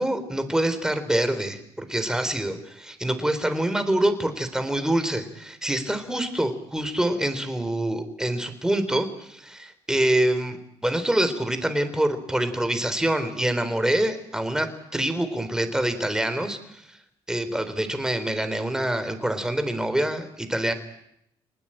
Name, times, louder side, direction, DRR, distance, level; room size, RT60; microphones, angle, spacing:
voice 1, 0.0-10.6 10.8-16.6 17.3-20.7, right 1 dB, 5° right, 9 dB, 4.0 m, -25 dB
29.0 x 19.5 x 9.1 m, 0.76 s
cardioid pair, 100°, 10 cm